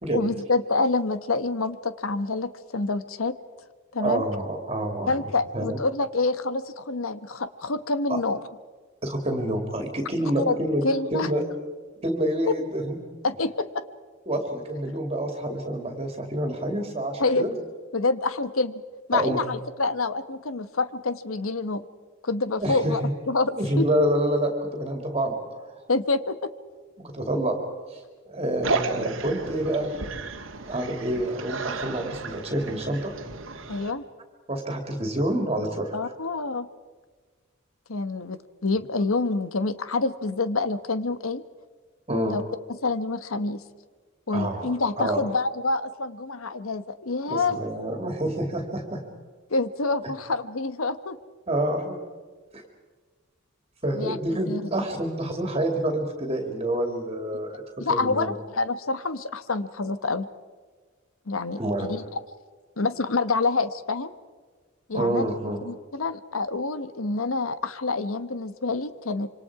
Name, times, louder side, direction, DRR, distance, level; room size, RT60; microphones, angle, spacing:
voice 1, 0.1-3.3 3.9-4.2 5.1-8.4 10.4-10.6 10.8-11.3 13.2-13.8 17.2-17.4 17.9-18.8 19.1-21.8 22.2-23.9 25.9-26.5 33.7-34.0 35.9-36.7 37.9-41.4 42.3-42.4 42.7-43.6 44.3-47.6 49.5-51.2 53.9-54.2 54.5-54.6 57.8-60.3 61.3-62.0 62.8-64.1 64.9-65.2 65.6-69.3, left 3 dB, 90° left, 13 dB, 1.1 m, -27 dB
voice 2, 4.0-5.2 5.5-5.8 8.1-8.2 9.0-10.8 11.1-11.4 12.0-13.0 14.3-17.5 19.1-19.4 22.6-23.1 23.6-25.8 27.0-27.6 27.9-29.9 30.7-33.1 34.5-36.0 42.1-42.4 44.3-45.2 47.3-49.0 51.5-52.0 52.5-52.6 53.8-58.3 61.6-61.9 64.9-65.6, right 1 dB, 30° right, 3 dB, 2.5 m, -27 dB
sound 1, 28.6-33.9, right 3 dB, 70° right, 1.7 m, -33 dB
26.5 x 25.0 x 4.9 m, 1.4 s
head